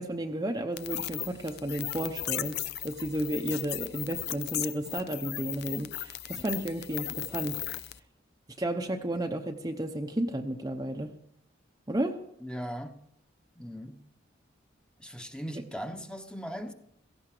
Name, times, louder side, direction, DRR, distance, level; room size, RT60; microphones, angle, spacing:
voice 1, 0.0-7.6 8.6-11.1 11.9-12.2, right 1 dB, 20° right, 0.8 m, -33 dB
sound 1, 0.8-8.0, left 12 dB, 55° left, 0.6 m, -36 dB
voice 2, 12.4-13.0 13.6-14.1 15.0-16.7, equal, 5° left, 1.0 m, -39 dB
17.0 x 15.5 x 4.9 m
head